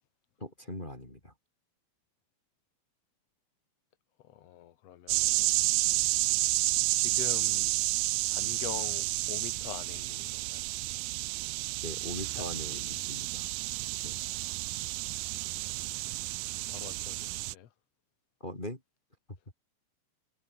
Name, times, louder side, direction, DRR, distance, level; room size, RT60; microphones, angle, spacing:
voice 1, 0.4-1.3 11.8-12.8 13.1-13.5 14.0-14.2 18.4-18.8, left 1 dB, 15° left, 3.8 m, -40 dB
voice 2, 4.2-5.6 6.9-7.8 8.3-10.6 12.3-12.5 12.7-13.0 15.3-15.7 16.7-17.7, left 11 dB, 55° left, 2.1 m, -44 dB
sound 1, 5.1-17.5, right 20 dB, 80° right, 2.3 m, -31 dB
omnidirectional pair, 4.3 m